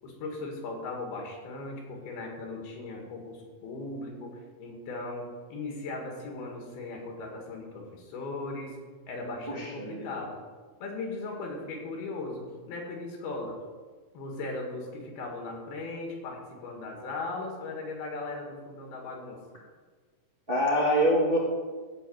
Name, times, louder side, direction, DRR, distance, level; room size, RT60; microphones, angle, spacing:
voice 1, 0.0-8.8 9.1-10.4 10.8-13.6 14.1-19.4, left 3 dB, 90° left, 1 dB, 4.0 m, -38 dB
voice 2, 9.5-10.1 20.5-21.4, equal, 20° right, -4 dB, 1.4 m, -25 dB
15.0 x 5.1 x 8.0 m, 1.5 s
omnidirectional pair, 4.3 m